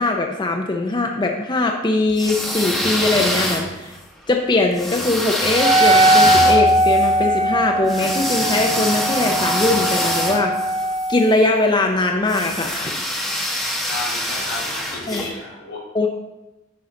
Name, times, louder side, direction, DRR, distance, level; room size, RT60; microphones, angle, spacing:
voice 1, 0.0-4.0 4.3-10.5 11.1-13.0 15.1-15.2 15.9-16.1, left 2 dB, 25° left, 2 dB, 0.6 m, -21 dB
sound 1, 2.1-4.0 4.8-11.1 12.3-15.3, equal, ahead, 1.0 m, -25 dB
Wind instrument woodwind instrument, 5.5-11.3, right 1 dB, 20° right, 0.3 m, -19 dB
sound 2, 6.2-9.2, left 1 dB, 85° right, 2.6 m, -34 dB
voice 2, 13.9-15.8, left 2 dB, 85° left, -4 dB, 3.2 m, -32 dB
9.4 x 5.6 x 3.8 m, 0.98 s
head